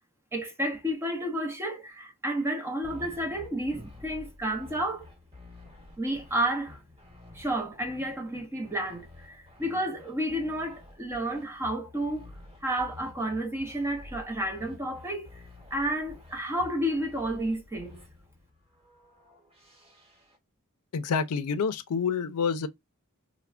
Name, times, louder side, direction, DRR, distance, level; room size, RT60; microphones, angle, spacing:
voice 1, 0.3-5.1 6.0-6.8 7.3-12.3 12.6-15.3 15.7-18.0, right 1 dB, 10° right, 0.5 m, -31 dB
sound 1, 2.4-2.5 2.8-20.4, left 2 dB, 25° right, 1.1 m, -50 dB
voice 2, 20.9-22.7, left 6 dB, 90° left, 0.4 m, -28 dB
3.2 x 2.1 x 2.3 m
head